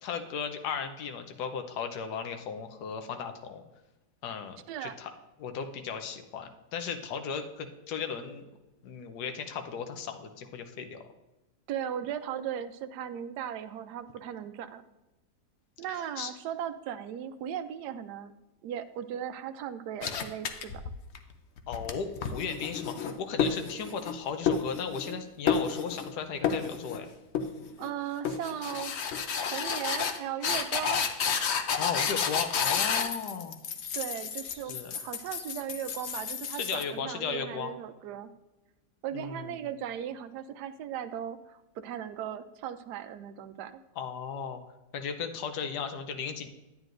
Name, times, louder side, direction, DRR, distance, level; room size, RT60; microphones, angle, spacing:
voice 1, 0.0-3.6 4.2-5.1 5.4-8.5 8.8-11.0 15.9-16.3 21.7-27.1 31.8-33.6 34.7-34.9 36.5-37.7 39.1-39.6 44.0-44.6 44.9-46.5, left 6 dB, 75° left, 6 dB, 1.3 m, -36 dB
voice 2, 11.7-14.8 15.8-18.3 18.6-20.8 27.8-28.9 29.5-31.0 33.9-38.3 39.0-43.8, right 9 dB, 75° right, 10 dB, 1.1 m, -37 dB
sound 1, 20.0-21.2 21.6-24.2 24.5-25.2 25.5-26.1 26.4-27.0 27.3-27.9 28.2-36.8, left 6 dB, 60° left, 0.7 m, -31 dB
12.0 x 9.2 x 2.6 m, 1.0 s
omnidirectional pair, 1.8 m